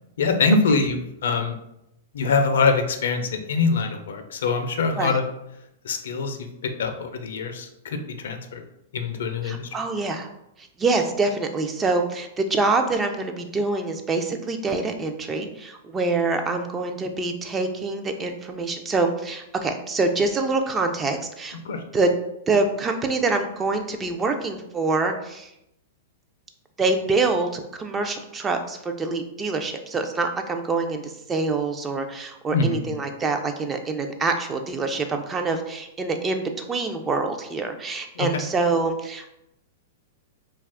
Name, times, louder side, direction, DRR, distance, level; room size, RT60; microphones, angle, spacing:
voice 1, 0.2-1.5 2.1-5.2 5.8-6.5 6.8-8.6 8.9-9.7 21.6-21.8 32.5-33.0 38.2-38.3, left 4 dB, 75° left, 6 dB, 0.4 m, -24 dB
voice 2, 9.4-10.3 10.6-21.6 21.9-22.1 22.5-25.5 26.8-39.4, right 3 dB, 20° right, 5 dB, 0.3 m, -25 dB
2.4 x 2.3 x 3.4 m, 0.82 s
hypercardioid pair, 130°, 0 cm